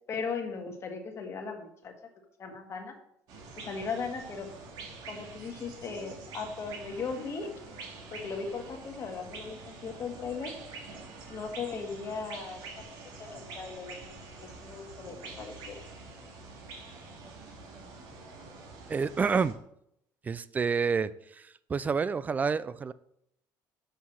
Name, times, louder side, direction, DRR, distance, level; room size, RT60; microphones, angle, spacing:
voice 1, 0.1-1.9 2.4-2.9 3.6-4.5 5.1-7.5 8.1-10.5 11.3-12.6 13.2-14.1 14.4-15.8, left 5 dB, 40° left, 3 dB, 1.5 m, -37 dB
sound 1, 3.3-19.5, right 3 dB, 70° right, 2.0 m, -46 dB
voice 2, 18.9-19.5 20.2-21.1 21.7-22.9, right 5 dB, 20° right, 16 dB, 0.4 m, -28 dB
6.1 x 5.7 x 6.2 m, 0.75 s
cardioid pair, 130°, 7 cm